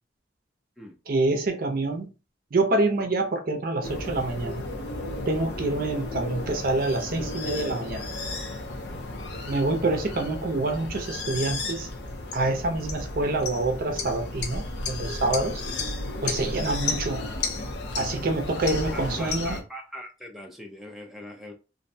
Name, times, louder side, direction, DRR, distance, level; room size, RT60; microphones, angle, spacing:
voice 1, 1.1-2.1 2.5-4.7 5.3-8.1 9.5-11.9 12.3-15.6 16.2-17.2 18.0-19.6, right 2 dB, 55° right, 0.5 m, -26 dB
sound 1, 3.8-19.6, left 2 dB, 70° left, 0.6 m, -33 dB
voice 2, 18.9-21.5, equal, ahead, 0.4 m, -41 dB
2.5 x 2.1 x 2.6 m
head